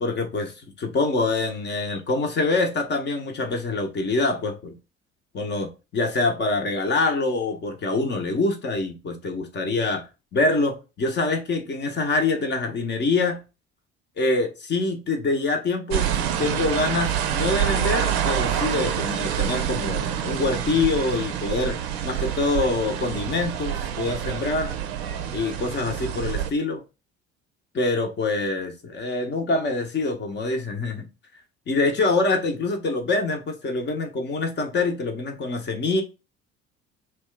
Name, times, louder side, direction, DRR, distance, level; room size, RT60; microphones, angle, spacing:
voice 1, 0.0-4.8 5.3-10.1 10.3-13.4 14.2-16.1 16.4-21.8 22.0-24.7 25.3-26.8 27.7-31.1 31.7-36.0, left 3 dB, 35° left, 0.7 m, -25 dB
sound 1, 15.9-26.5, right 9 dB, 75° right, 0.5 m, -27 dB
2.9 x 2.2 x 3.2 m
figure-of-eight pair, 55°, 32 cm